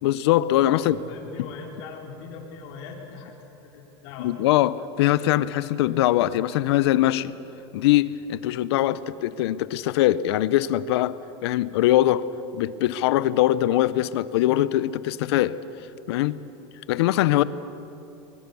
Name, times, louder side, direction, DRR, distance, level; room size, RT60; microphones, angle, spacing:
voice 1, 0.0-1.0 4.2-7.3 7.7-12.3 12.5-15.6 16.1-16.4 16.9-17.4, left 14 dB, 75° left, 17 dB, 0.8 m, -22 dB
voice 2, 0.7-3.3 3.7-4.3, left 5 dB, 55° left, -1 dB, 4.4 m, -40 dB
24.0 x 22.0 x 7.1 m, 3.0 s
supercardioid pair, 150°, 14 cm